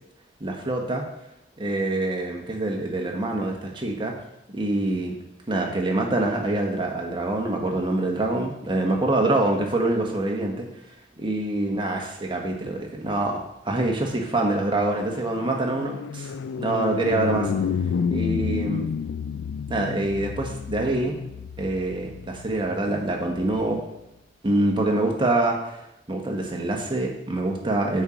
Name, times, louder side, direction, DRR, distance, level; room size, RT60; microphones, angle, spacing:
voice 1, 0.4-1.1 1.6-4.2 4.5-5.2 5.5-10.7 11.2-16.3 16.6-17.5 18.1-18.9 19.7-21.2 21.6-23.8 24.4-25.8 26.1-28.0, right 2 dB, 25° right, 1 dB, 1.2 m, -25 dB
sound 1, 14.1-23.6, left 6 dB, 75° left, 0.3 m, -31 dB
7.9 x 4.4 x 5.0 m, 0.86 s
head